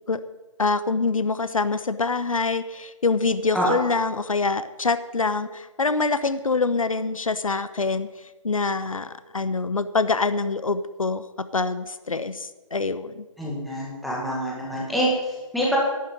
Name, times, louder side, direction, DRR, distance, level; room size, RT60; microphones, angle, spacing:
voice 1, 0.6-8.1 8.4-11.2 11.5-13.2, left 4 dB, 75° left, 13 dB, 0.9 m, -25 dB
voice 2, 13.4-15.8, equal, ahead, -5 dB, 1.7 m, -26 dB
11.5 x 7.3 x 9.1 m, 1.2 s
figure-of-eight pair, 160°, 17 cm